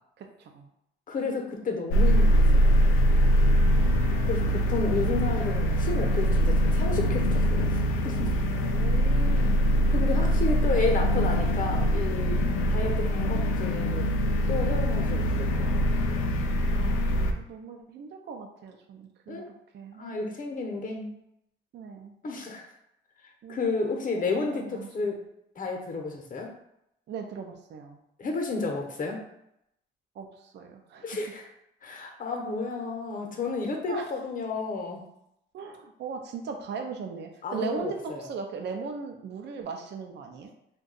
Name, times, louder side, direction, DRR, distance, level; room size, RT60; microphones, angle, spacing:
voice 1, 0.2-0.7 3.5-4.3 8.5-9.6 12.6-12.8 16.7-19.4 19.7-20.3 21.7-22.2 23.4-25.1 27.1-28.0 30.2-31.2 33.9-34.0 35.5-40.5, right 5 dB, 60° right, 3 dB, 0.5 m, -39 dB
voice 2, 1.1-2.8 4.2-7.7 8.0-8.4 9.1-9.2 9.9-12.4 12.7-14.1 14.5-15.9 19.3-19.5 20.0-21.1 22.2-22.7 23.5-25.2 25.6-26.5 28.2-29.2 31.0-31.4 31.8-35.0 37.4-38.3, left 3 dB, 45° left, 2 dB, 0.8 m, -31 dB
sound 1, 1.9-17.3, equal, 90° left, 0.4 m, -23 dB
2.6 x 2.3 x 3.9 m, 0.79 s
cardioid pair, 90°, 20 cm